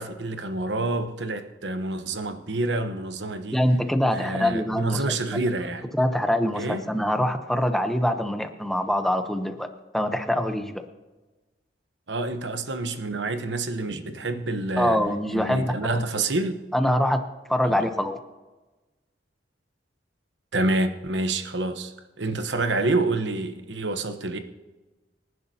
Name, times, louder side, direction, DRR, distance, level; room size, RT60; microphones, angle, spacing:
voice 1, 0.0-3.6 4.1-5.8 6.5-6.8 12.1-15.0 15.3-16.6 17.7-17.9 20.5-24.4, right 2 dB, 65° right, 1.0 m, -28 dB
voice 2, 3.5-5.2 5.9-9.7 9.9-10.8 14.8-16.0 16.7-18.2, equal, ahead, 0.8 m, -24 dB
25.5 x 11.0 x 2.8 m
head